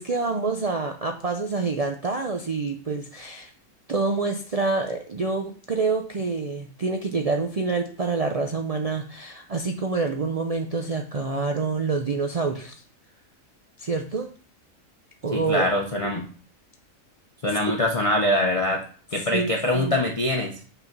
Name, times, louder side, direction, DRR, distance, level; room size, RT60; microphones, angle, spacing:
voice 1, 0.0-3.5 3.9-12.8 13.8-14.3 15.2-15.7 17.5-17.7 19.2-19.9, right 4 dB, 70° right, 4 dB, 0.3 m, -27 dB
voice 2, 15.3-16.2 17.4-18.8 19.1-20.5, left 1 dB, 30° left, 1 dB, 0.7 m, -23 dB
5.6 x 4.0 x 5.9 m, 0.42 s
omnidirectional pair, 1.5 m